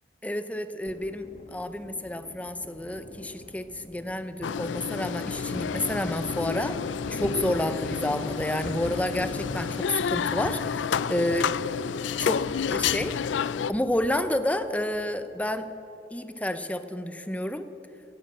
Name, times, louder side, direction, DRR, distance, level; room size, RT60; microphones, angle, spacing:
voice 1, 0.2-6.8 7.1-11.7 12.2-13.1 13.7-15.7 16.1-17.7, left 1 dB, 10° left, 10 dB, 0.7 m, -30 dB
Thunder, 0.9-15.7, left 1 dB, 45° left, 1.0 m, -42 dB
sound 1, 4.4-13.7, left 7 dB, 80° left, 0.4 m, -30 dB
17.0 x 11.0 x 7.7 m, 2.8 s
head